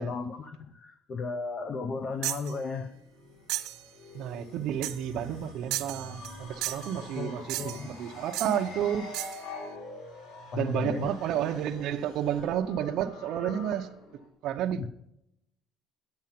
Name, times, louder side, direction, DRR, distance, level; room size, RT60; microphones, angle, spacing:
voice 1, 0.0-2.9 7.1-7.9 10.5-11.1 14.8-14.9, left 4 dB, 30° left, 0.7 m, -34 dB
sound 1, 1.9-14.3, left 3 dB, 85° left, 3.7 m, -46 dB
sound 2, 2.2-2.5 3.5-3.8 4.8-5.1 5.7-6.4 6.6-6.9 7.5-7.9 8.3-8.6 9.1-9.4, right 16 dB, 85° right, 1.2 m, -34 dB
voice 2, 4.1-9.1 10.5-13.9 14.4-14.9, right 10 dB, 55° right, 0.7 m, -31 dB
10.5 x 8.6 x 5.8 m
cardioid pair, 175°, 0 cm